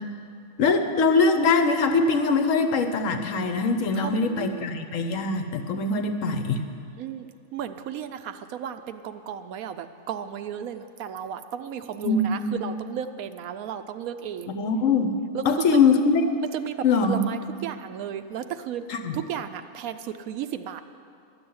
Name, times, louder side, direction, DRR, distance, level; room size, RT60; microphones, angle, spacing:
voice 1, 0.6-6.6 12.0-12.5 14.6-15.1 15.5-16.3 16.8-17.2 18.9-19.1, left 4 dB, 60° left, 7 dB, 1.1 m, -22 dB
voice 2, 4.0-4.7 7.0-14.6 15.3-15.8 16.5-18.9 19.1-20.8, right 9 dB, 70° right, 10 dB, 0.9 m, -34 dB
12.0 x 6.9 x 9.4 m, 2.4 s
omnidirectional pair, 1.7 m